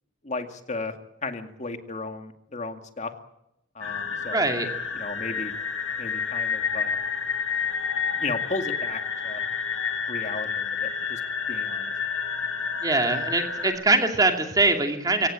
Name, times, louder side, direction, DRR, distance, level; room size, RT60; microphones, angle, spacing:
voice 1, 0.2-0.9 1.2-3.1 3.8-4.4 4.9-5.5 6.0-7.0 8.2-9.4 10.1-11.2 11.5-11.9, left 3 dB, 35° left, 6 dB, 2.2 m, -34 dB
sound 1, 3.8-13.7, left 6 dB, 80° left, 6.0 m, -29 dB
voice 2, 4.3-4.7 12.8-15.3, right 2 dB, 20° right, 4 dB, 2.5 m, -22 dB
23.0 x 17.5 x 8.8 m, 0.83 s
head